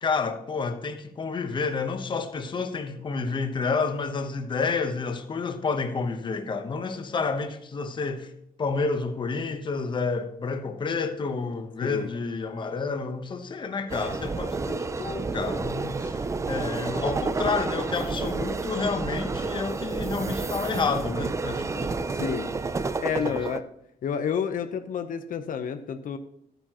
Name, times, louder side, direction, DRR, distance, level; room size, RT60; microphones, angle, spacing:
voice 1, 0.0-8.3 8.6-22.0 22.7-22.8 23.2-23.4, left 4 dB, 30° left, 0.9 m, -30 dB
sound 1, 13.9-23.6, right 4 dB, 20° right, 0.4 m, -30 dB
voice 2, 23.0-23.7 24.0-26.2, left 7 dB, 65° left, 0.9 m, -29 dB
14.0 x 9.1 x 3.0 m
wide cardioid pair, 175°, 15 cm